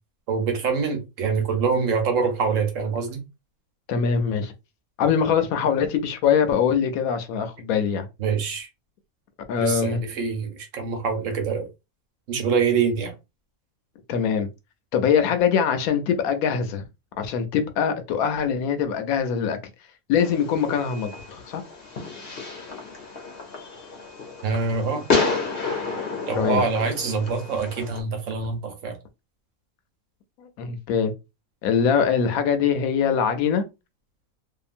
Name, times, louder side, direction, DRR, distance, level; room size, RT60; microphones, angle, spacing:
voice 1, 0.3-3.2 8.2-8.7 9.6-11.7 12.3-13.1 24.4-25.0 26.3-29.0, right 5 dB, 65° right, 1.1 m, -25 dB
voice 2, 3.9-4.5 5.0-8.1 9.5-10.0 14.1-14.5 14.9-16.8 17.2-19.6 20.1-21.6 26.4-26.6 30.4-31.1 31.6-33.6, left 7 dB, 80° left, 1.1 m, -23 dB
Fireworks, 20.2-28.0, left 4 dB, 50° left, 0.8 m, -30 dB
2.8 x 2.4 x 2.5 m
omnidirectional pair, 1.5 m